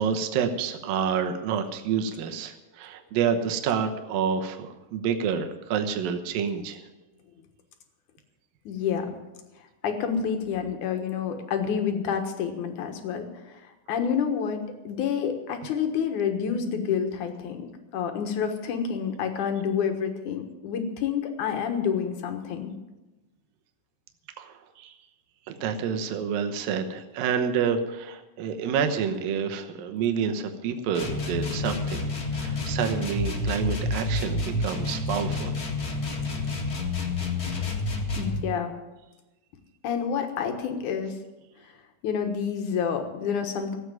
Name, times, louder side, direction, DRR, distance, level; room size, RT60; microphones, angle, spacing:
voice 1, 0.0-6.9 24.4-25.0 25.5-35.6 36.4-36.5, right 7 dB, 75° right, 6 dB, 2.7 m, -28 dB
voice 2, 8.7-9.1 9.8-13.6 13.9-17.7 17.9-22.7 38.2-38.7 39.8-41.2 42.0-43.8, left 7 dB, 65° left, 6 dB, 2.7 m, -28 dB
sound 1, 30.9-38.4, left 2 dB, 35° left, 1.9 m, -29 dB
15.5 x 8.2 x 9.1 m, 1.1 s
omnidirectional pair, 4.2 m